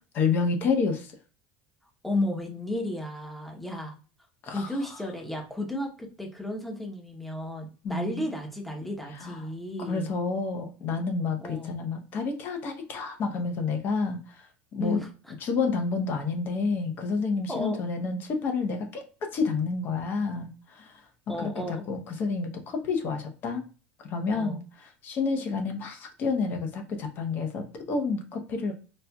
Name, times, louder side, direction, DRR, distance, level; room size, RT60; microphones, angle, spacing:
voice 1, 0.2-1.1 4.4-4.7 7.8-8.2 9.2-9.4 9.8-14.2 14.7-15.0 15.4-21.0 21.3-23.6 24.0-28.7, left 4 dB, 35° left, 5 dB, 0.7 m, -29 dB
voice 2, 2.0-4.0 4.5-10.1 11.4-11.7 14.8-15.3 17.5-17.8 21.3-21.8 24.3-24.6, left 1 dB, 5° left, 1 dB, 0.8 m, -33 dB
4.3 x 2.3 x 2.3 m, 0.36 s
cardioid pair, 150°, 6 cm